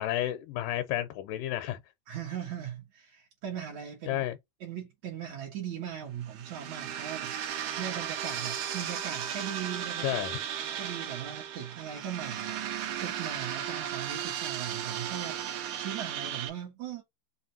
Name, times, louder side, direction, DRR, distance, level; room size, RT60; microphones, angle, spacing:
voice 1, 0.0-1.8 4.1-4.4 10.0-10.4, left 13 dB, 80° left, 2.1 m, -31 dB
voice 2, 2.1-4.2 4.6-10.2 10.5-17.0, right 9 dB, 65° right, 2.3 m, -39 dB
sound 1, 6.2-16.5, right 10 dB, 85° right, 2.7 m, -35 dB
5.6 x 2.5 x 2.6 m
omnidirectional pair, 3.8 m